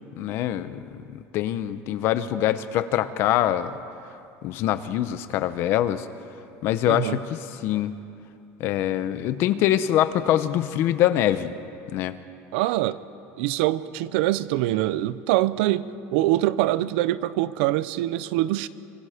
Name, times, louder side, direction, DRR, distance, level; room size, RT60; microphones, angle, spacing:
voice 1, 0.2-3.8 4.4-6.1 6.6-7.9 8.6-11.5 11.9-12.2, left 12 dB, 45° left, 12 dB, 0.8 m, -24 dB
voice 2, 6.9-7.2 12.5-13.0 13.4-18.7, right 15 dB, 85° right, 16 dB, 0.7 m, -24 dB
25.0 x 24.5 x 5.1 m, 2.7 s
cardioid pair, 180°, 6 cm